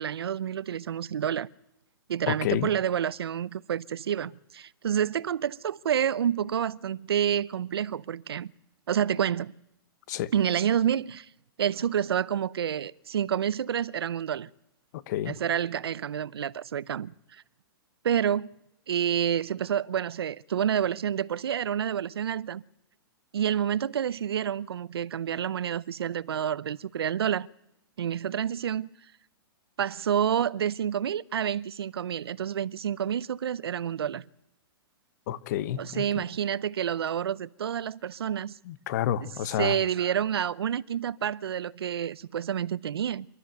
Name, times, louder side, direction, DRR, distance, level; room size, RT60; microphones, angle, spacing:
voice 1, 0.0-1.5 2.1-8.5 8.9-9.5 10.3-11.3 11.6-14.5 15.3-17.4 18.0-18.6 18.9-22.6 23.3-27.5 28.0-28.9 29.8-34.2 35.8-38.6 39.2-39.3 39.6-43.3, right 9 dB, 85° right, 0.7 m, -28 dB
voice 2, 2.3-2.7 10.1-10.3 14.9-15.3 35.3-36.2 38.7-39.8, left 11 dB, 45° left, 1.2 m, -30 dB
28.0 x 13.0 x 9.2 m
hypercardioid pair, 150°, 13 cm